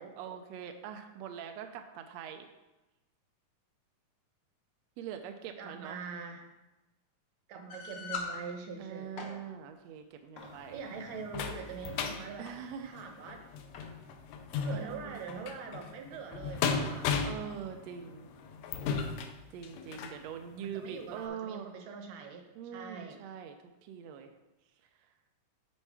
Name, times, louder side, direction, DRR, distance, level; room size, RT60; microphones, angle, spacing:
voice 1, 0.2-2.5 5.0-6.0 8.8-10.8 12.4-12.9 14.7-15.1 17.2-18.3 19.5-21.7 22.5-23.6 23.8-24.3, right 8 dB, 85° right, 6 dB, 1.5 m, -43 dB
voice 2, 5.6-6.5 7.5-9.3 10.7-13.4 14.6-17.1 20.5-23.2, right 6 dB, 70° right, 5 dB, 1.8 m, -43 dB
sound 1, 7.7-8.3 9.0-9.3 10.4-10.6 11.2-11.6 12.5-12.6 12.9-13.0 13.7-13.9, left 5 dB, 60° left, 1.2 m, -41 dB
sound 2, 10.4-20.2 20.8-20.9 21.3-21.4, left 6 dB, 80° left, 1.8 m, -36 dB
9.9 x 4.5 x 4.7 m, 1.0 s
omnidirectional pair, 3.7 m